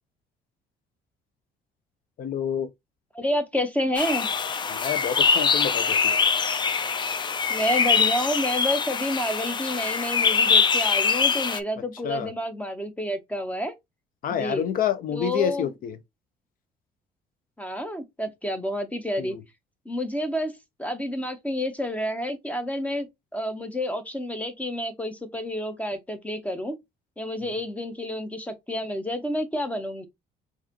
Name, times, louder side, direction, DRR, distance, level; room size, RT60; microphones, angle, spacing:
voice 1, 2.2-2.7 4.7-6.2 12.0-12.3 14.2-16.0 19.2-19.4, left 9 dB, 55° left, 0.7 m, -28 dB
voice 2, 3.1-4.3 7.5-13.7 14.3-14.6 15.1-15.7 17.6-19.4 19.8-20.5 20.8-23.1 23.3-26.8 27.2-30.1, equal, 10° left, 0.9 m, -29 dB
sound 1, 3.9-11.6, left 5 dB, 25° left, 0.4 m, -23 dB
4.8 x 2.7 x 2.9 m
cardioid pair, 110°, 17 cm